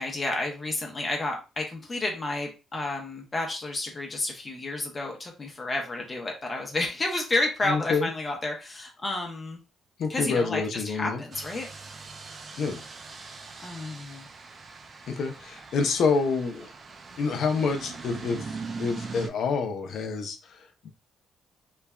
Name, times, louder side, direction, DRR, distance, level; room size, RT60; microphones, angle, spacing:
voice 1, 0.0-9.6 10.1-11.7 13.6-14.3, left 2 dB, 30° left, 2 dB, 0.7 m, -31 dB
voice 2, 7.6-8.1 10.0-11.2 12.6-12.8 15.1-16.7 17.2-18.5 18.8-20.9, left 4 dB, 70° left, 5 dB, 0.5 m, -27 dB
sound 1, 11.3-19.3, right 4 dB, 45° right, 0.4 m, -41 dB
3.2 x 2.2 x 2.3 m, 0.30 s
cardioid pair, 90°, 0 cm